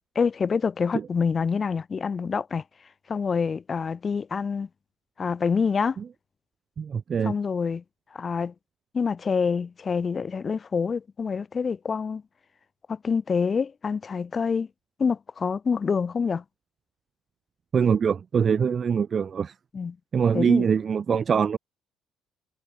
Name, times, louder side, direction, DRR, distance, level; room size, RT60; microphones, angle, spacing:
voice 1, 0.1-2.6 3.1-4.7 5.2-6.0 7.2-7.8 8.1-8.5 8.9-12.2 12.9-14.7 15.0-16.4 19.7-20.0 20.3-20.7, left 5 dB, 35° left, 0.9 m, -26 dB
voice 2, 6.8-7.3 17.7-19.5 20.1-21.6, right 6 dB, 45° right, 0.4 m, -23 dB
cardioid pair, 85°, 0 cm